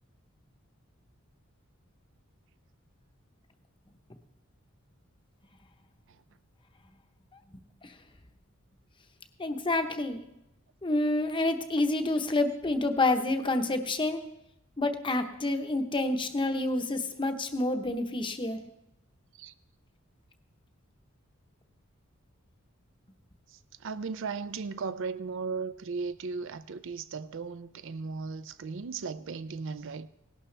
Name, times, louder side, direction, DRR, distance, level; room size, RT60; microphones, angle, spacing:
voice 1, 9.4-10.2 10.8-14.3 14.8-18.6, left 2 dB, 25° left, 0.9 m, -28 dB
voice 2, 23.8-30.1, right 4 dB, 60° right, 0.5 m, -36 dB
18.0 x 11.5 x 3.3 m
head